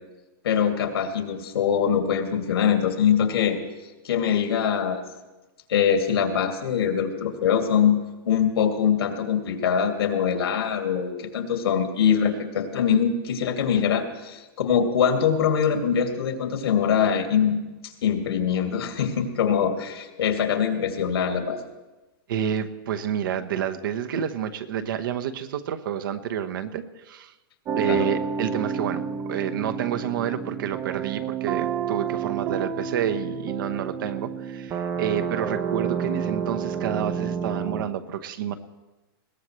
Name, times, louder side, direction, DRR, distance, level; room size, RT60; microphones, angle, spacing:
voice 1, 0.4-3.6 4.0-5.0 5.7-17.6 18.0-21.6 27.8-28.1, left 7 dB, 85° left, 4 dB, 2.4 m, -23 dB
voice 2, 22.3-27.3 27.7-38.5, right 9 dB, 60° right, 9 dB, 1.1 m, -29 dB
sound 1, 27.6-37.8, right 7 dB, 20° right, 0.7 m, -30 dB
21.0 x 17.5 x 3.2 m, 1.1 s
supercardioid pair, 165°, 13 cm